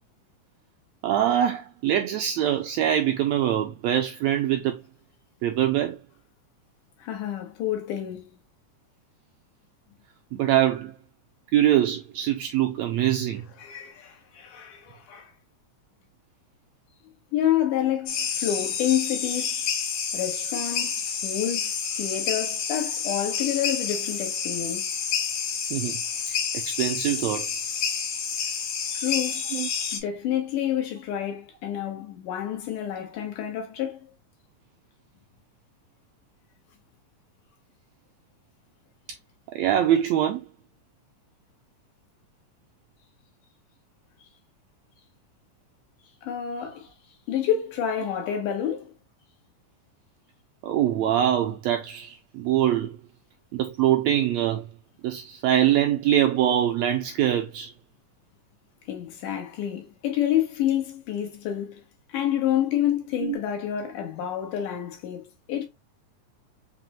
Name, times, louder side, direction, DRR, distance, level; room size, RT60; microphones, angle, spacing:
voice 1, 1.0-4.8 5.4-6.0 10.3-11.0 11.5-13.4 25.7-26.0 26.3-27.5 29.5-29.7 39.5-40.5 50.6-53.0 53.5-54.7 55.0-57.7 63.2-63.4, right 11 dB, 80° right, 1.5 m, -23 dB
voice 2, 7.0-8.3 13.6-15.3 17.3-19.6 20.1-25.0 28.9-29.4 29.9-34.0 46.2-46.9 47.3-48.9 58.9-61.8 62.1-65.7, left 10 dB, 90° left, 2.6 m, -28 dB
sound 1, 18.1-30.0, left 6 dB, 70° left, 1.4 m, -29 dB
5.8 x 2.1 x 2.9 m
omnidirectional pair, 3.5 m